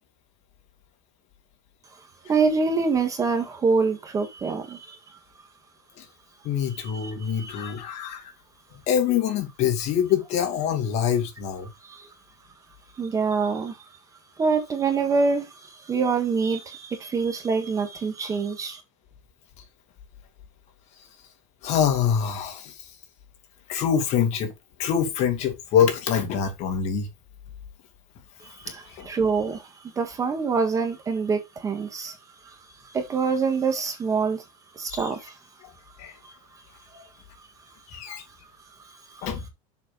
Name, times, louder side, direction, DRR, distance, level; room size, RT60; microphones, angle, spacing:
voice 1, 2.3-5.2 6.7-7.7 11.8-12.1 12.9-13.8 14.4-18.8 28.4-32.2 32.4-32.6 32.8-34.4 34.7-35.4 36.2-36.3 36.9-37.1 37.4-37.5 38.1-38.2 38.8-39.3, right 4 dB, 20° right, 1.6 m, -26 dB
voice 2, 6.4-8.3 8.9-11.7 21.6-22.8 23.7-24.5 24.8-27.1 29.0-29.1 34.9-35.1 36.0-36.1 37.9-38.2 39.2-39.5, left 8 dB, 45° left, 2.5 m, -25 dB
7.2 x 6.0 x 4.0 m
supercardioid pair, 155°, 16 cm